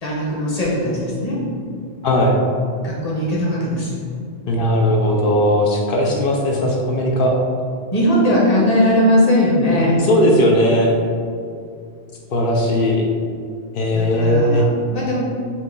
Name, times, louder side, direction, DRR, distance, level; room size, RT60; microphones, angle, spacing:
voice 1, 0.0-1.4 2.8-4.0 6.0-6.3 7.9-10.0 13.9-15.2, equal, 35° left, -6 dB, 1.1 m, -19 dB
voice 2, 2.0-2.4 4.5-7.3 9.8-10.9 12.3-13.1 13.7-14.7, left 1 dB, 60° left, 0 dB, 0.7 m, -17 dB
4.3 x 2.8 x 3.8 m, 2.3 s
omnidirectional pair, 1.1 m